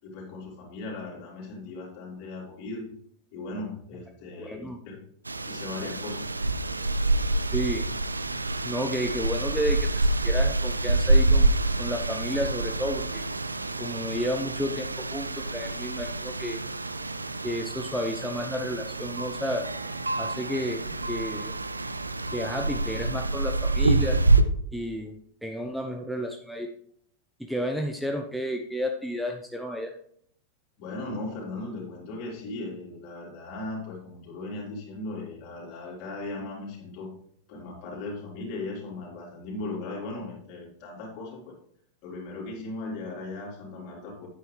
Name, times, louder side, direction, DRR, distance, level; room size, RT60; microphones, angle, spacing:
voice 1, 0.0-2.9 3.3-5.0 5.5-6.3 30.8-37.1 37.5-41.6 42.0-44.3, left 2 dB, 45° left, -2 dB, 3.7 m, -37 dB
voice 2, 4.4-4.8 7.5-7.9 8.6-11.5 11.8-13.2 13.8-16.6 17.4-19.6 20.2-21.5 22.3-24.2 24.7-25.2 25.4-26.7 27.4-29.9, equal, ahead, 3 dB, 0.7 m, -31 dB
sound 1, 5.3-24.4, right 2 dB, 80° right, 0.5 m, -27 dB
9.1 x 8.8 x 3.2 m, 0.66 s
figure-of-eight pair, 90°, 0 cm